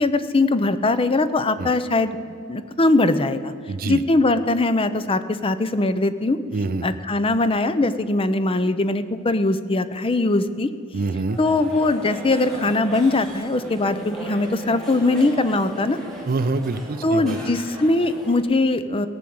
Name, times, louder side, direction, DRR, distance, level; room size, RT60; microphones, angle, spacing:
voice 1, 0.0-2.2 2.5-3.5 3.9-6.4 6.8-10.7 11.4-16.0 17.0-19.1, left 2 dB, 25° left, 12 dB, 0.6 m, -21 dB
voice 2, 3.7-4.0 6.5-6.9 10.9-11.4 16.3-17.4, right 3 dB, 45° right, 14 dB, 0.5 m, -25 dB
sound 1, 11.3-18.4, right 1 dB, ahead, 2.6 m, -37 dB
17.5 x 6.2 x 8.6 m, 2.5 s
head